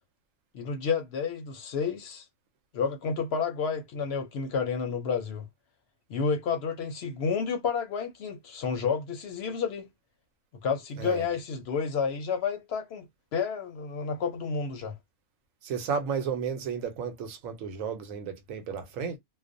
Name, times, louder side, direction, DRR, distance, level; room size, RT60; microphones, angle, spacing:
voice 1, 0.5-2.2 2.7-5.5 6.1-9.9 10.6-13.1 13.3-14.9, left 5 dB, 65° left, 0.7 m, -30 dB
voice 2, 15.6-19.2, right 6 dB, 85° right, 1.0 m, -33 dB
2.4 x 2.0 x 2.5 m
omnidirectional pair, 1.3 m